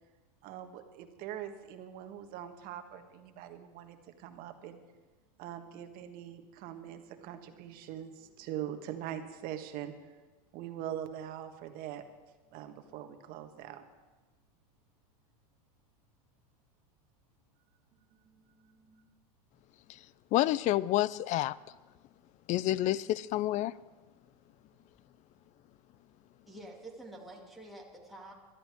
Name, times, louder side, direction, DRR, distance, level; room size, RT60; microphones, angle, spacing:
voice 1, 0.4-4.8 5.4-10.1 10.5-12.0 12.5-13.8 18.2-19.1, right 10 dB, 50° right, 1.6 m, -43 dB
voice 2, 20.3-21.5 22.5-23.7, left 14 dB, 40° left, 0.5 m, -28 dB
voice 3, 26.5-28.3, right 1 dB, ahead, 2.5 m, -48 dB
21.5 x 13.0 x 3.6 m
hypercardioid pair, 110°, 20 cm